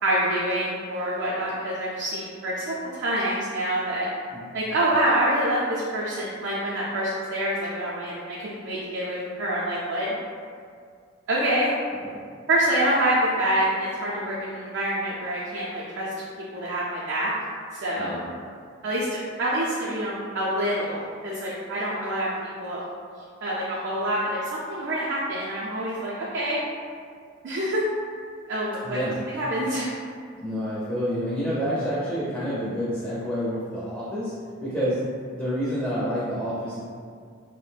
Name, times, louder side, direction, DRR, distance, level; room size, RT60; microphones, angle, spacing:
voice 1, 0.0-4.1 4.5-10.2 11.3-11.7 12.5-16.3 16.5-17.3 17.7-18.2 18.8-19.1 19.4-22.3 22.6-22.8 23.4-26.6 27.4-27.8 28.5-29.0 29.3-29.9, right 1 dB, 65° right, -7 dB, 0.4 m, -26 dB
voice 2, 18.0-18.3 28.8-29.2 30.4-34.3 34.6-35.0 35.3-36.8, equal, 5° left, -9 dB, 0.4 m, -28 dB
2.4 x 2.1 x 3.1 m, 2.1 s
head